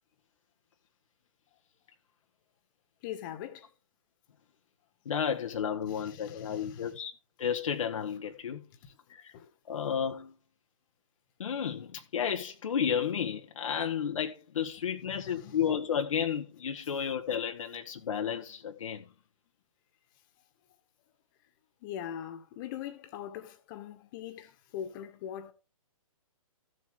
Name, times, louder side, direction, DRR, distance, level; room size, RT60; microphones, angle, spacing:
voice 1, 3.0-3.7 5.9-7.0 9.3-9.5 15.1-15.7 21.8-25.5, left 9 dB, 35° left, 2.0 m, -42 dB
voice 2, 5.0-7.1 7.4-8.6 9.1-9.3 9.6-10.4 11.4-19.0, left 8 dB, 65° left, 1.5 m, -32 dB
14.5 x 7.9 x 3.7 m
hypercardioid pair, 135°, 18 cm